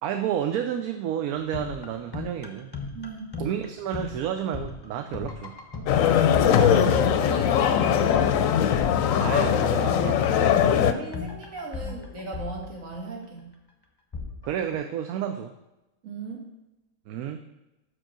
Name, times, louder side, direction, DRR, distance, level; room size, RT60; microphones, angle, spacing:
voice 1, 0.0-2.7 3.4-5.5 9.2-10.3 10.6-11.1 11.8-12.0 14.4-15.5 17.1-17.4, right 9 dB, 80° right, 6 dB, 1.0 m, -31 dB
sound 1, 1.3-13.2 14.1-14.8, left 4 dB, 25° left, 0.5 m, -38 dB
voice 2, 2.9-3.4 5.7-8.6 10.7-13.5 16.0-16.4, right 3 dB, 65° right, -1 dB, 1.9 m, -36 dB
sound 2, 5.9-10.9, left 9 dB, 70° left, 0.9 m, -21 dB
6.2 x 5.0 x 6.0 m, 0.97 s
omnidirectional pair, 1.5 m